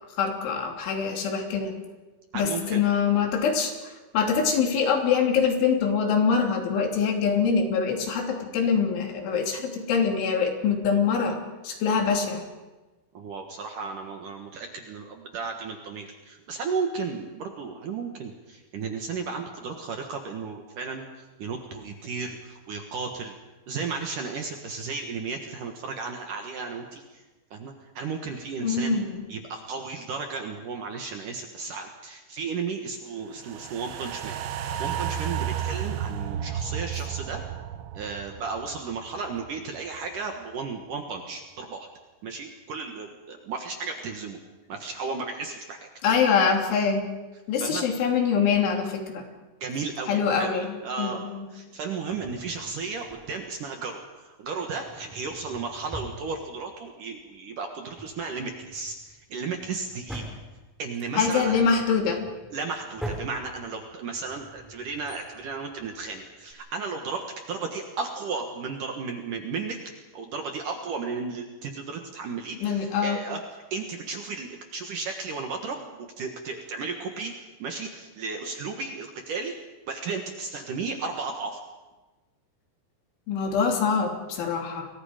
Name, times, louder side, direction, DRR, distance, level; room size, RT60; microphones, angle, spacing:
voice 1, 0.2-1.8 2.3-3.7 4.1-11.4 11.6-12.4 28.6-29.2 46.0-47.1 47.5-49.2 50.1-51.5 61.2-62.2 72.6-73.2 83.3-84.9, left 6 dB, 85° left, 2 dB, 5.3 m, -24 dB
voice 2, 2.3-2.8 13.1-23.3 23.7-27.2 27.5-29.0 29.3-37.4 37.9-41.9 42.2-44.4 44.7-45.9 47.5-47.8 49.6-51.2 51.5-60.2 60.8-61.6 62.5-69.8 70.1-73.4 73.7-77.3 77.6-79.6 79.9-81.6, right 4 dB, 60° right, 4 dB, 2.5 m, -34 dB
sound 1, 33.4-39.8 40.2-40.3, right 9 dB, 80° right, 3.4 m, -33 dB
Drawer open or close, 52.1-53.6 54.4-56.9 57.2-57.3 57.8-66.5, right 1 dB, ahead, 4.4 m, -43 dB
29.5 x 22.5 x 5.1 m, 1.2 s
omnidirectional pair, 5.3 m